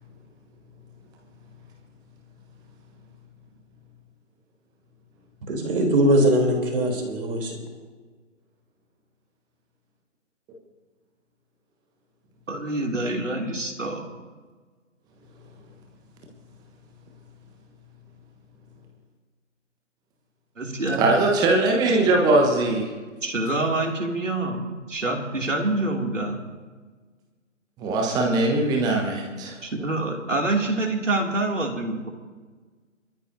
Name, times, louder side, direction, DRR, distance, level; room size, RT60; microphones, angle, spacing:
voice 1, 5.5-7.5, right 1 dB, 45° right, 1 dB, 3.6 m, -21 dB
voice 2, 12.5-14.0 20.6-21.1 23.2-26.4 29.6-32.1, right 2 dB, 75° right, 2 dB, 2.8 m, -26 dB
voice 3, 21.0-22.9 27.8-29.5, right 2 dB, 10° right, 0 dB, 1.2 m, -21 dB
23.0 x 13.5 x 2.8 m, 1.4 s
figure-of-eight pair, 140°, 38 cm